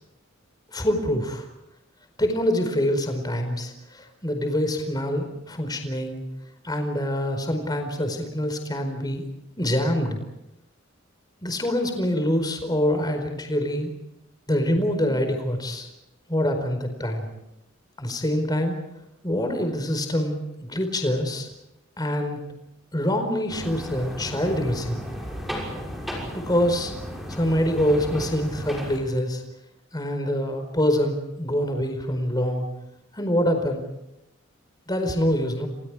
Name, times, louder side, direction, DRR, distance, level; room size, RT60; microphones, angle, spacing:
voice 1, 0.7-1.5 2.2-6.2 6.6-9.3 9.6-10.2 11.4-13.9 14.5-15.9 16.3-17.3 18.0-18.7 19.2-21.5 22.0-22.4 22.9-25.0 26.3-26.9 27.3-29.4 29.9-32.7 33.1-33.8 34.9-35.7, equal, 20° left, 6 dB, 4.6 m, -25 dB
sound 1, 23.5-29.0, equal, ahead, 6.2 m, -35 dB
29.5 x 28.0 x 4.9 m, 0.88 s
head